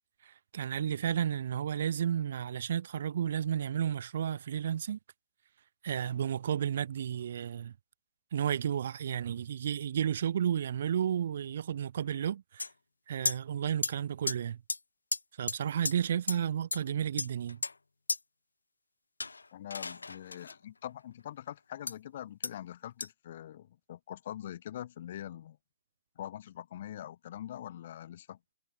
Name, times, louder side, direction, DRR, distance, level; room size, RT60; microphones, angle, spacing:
voice 1, 0.2-5.0 5.8-7.7 8.3-12.6 13.1-14.6 15.4-17.6, right 9 dB, 60° right, 2.8 m, -32 dB
sound 1, 12.6-12.7 13.2-13.4 13.8-13.9 14.3-14.4 14.7-14.8 15.1-15.2 15.5-15.6 15.8-15.9 16.3-16.4 16.7-16.8 17.2-17.7 18.1-18.2 19.2-20.6 21.9-22.0 22.4-22.5 23.0-23.1, left 3 dB, 85° left, 0.8 m, -33 dB
voice 2, 19.5-25.6 26.2-28.4, left 11 dB, 55° left, 5.7 m, -43 dB
figure-of-eight pair, 125°, 0 cm